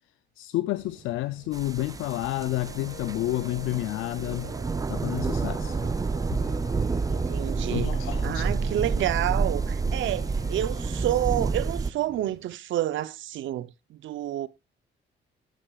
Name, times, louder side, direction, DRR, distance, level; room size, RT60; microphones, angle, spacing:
voice 1, 0.4-4.5 4.9-5.8 6.3-6.4 7.7-8.4, left 16 dB, 85° left, 0.5 m, -30 dB
sound 1, 0.7-12.6, right 6 dB, 50° right, 1.4 m, -50 dB
sound 2, 1.5-11.9, right 4 dB, 20° right, 0.4 m, -29 dB
sound 3, 2.6-11.5, left 2 dB, 65° left, 6.6 m, -45 dB
voice 2, 7.1-7.9 8.2-14.5, right 13 dB, 75° right, 0.7 m, -29 dB
13.0 x 10.0 x 2.4 m
cardioid pair, 90°, 20 cm